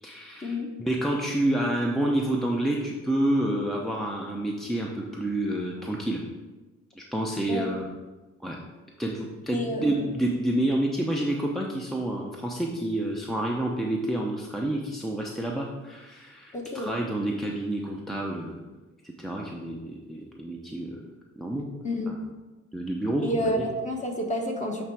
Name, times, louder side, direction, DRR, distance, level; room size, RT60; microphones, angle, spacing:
voice 1, 0.0-6.2 7.0-7.9 8.4-8.6 9.0-18.6 19.0-21.0 21.4-21.7 22.1-22.2 22.7-23.7, right 1 dB, ahead, -1 dB, 0.7 m, -29 dB
voice 2, 9.5-10.2 16.5-16.9 21.8-22.1 23.2-24.8, equal, 25° left, 2 dB, 1.3 m, -29 dB
8.7 x 3.3 x 4.8 m, 1.2 s
cardioid pair, 90°, 30 cm